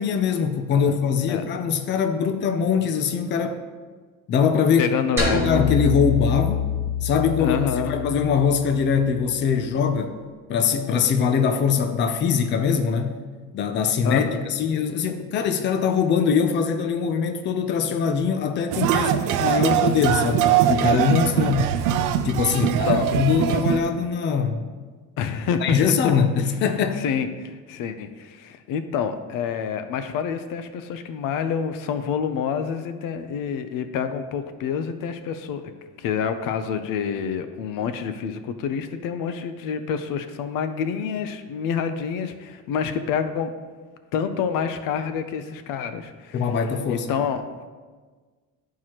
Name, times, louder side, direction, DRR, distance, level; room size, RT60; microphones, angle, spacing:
voice 1, 0.0-3.6 4.3-4.9 5.3-6.6 7.0-7.6 7.9-10.1 10.5-13.2 13.5-21.7 22.2-24.6 25.6-27.0 46.3-47.1, left 6 dB, 35° left, 7 dB, 0.5 m, -22 dB
voice 2, 4.8-5.5 7.4-7.9 14.0-14.5 22.5-23.1 25.2-25.6 26.0-26.1 27.0-35.6 36.0-43.5 44.1-46.5 46.9-47.4, left 7 dB, 85° left, 9 dB, 0.7 m, -27 dB
sound 1, 5.2-9.6, left 5 dB, 5° right, 2.1 m, -26 dB
sound 2, 18.7-23.8, right 10 dB, 70° right, 0.5 m, -22 dB
12.5 x 4.7 x 2.9 m, 1.4 s
cardioid pair, 170°, 32 cm